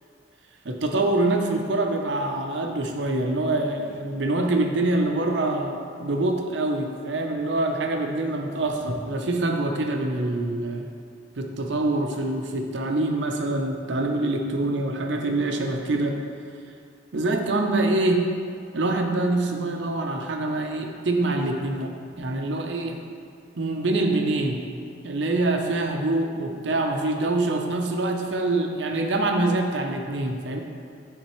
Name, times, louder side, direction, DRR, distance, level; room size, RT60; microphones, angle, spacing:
voice 1, 0.6-10.9 11.4-16.2 17.1-18.3 18.7-21.9 22.2-23.0 23.5-24.6 25.0-30.6, right 2 dB, 75° right, 3 dB, 0.6 m, -25 dB
9.6 x 3.6 x 3.1 m, 2.3 s
head